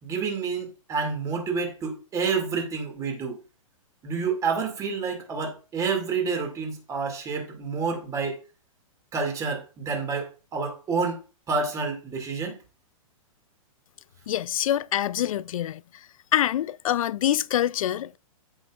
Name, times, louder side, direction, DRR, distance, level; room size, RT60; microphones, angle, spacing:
voice 1, 0.0-3.4 4.0-8.4 9.1-11.2 11.5-12.6, right 5 dB, 20° right, 2.3 m, -29 dB
voice 2, 14.3-15.8 16.3-18.2, left 11 dB, 70° left, 0.5 m, -25 dB
14.5 x 5.9 x 2.4 m
hypercardioid pair, 150°, 18 cm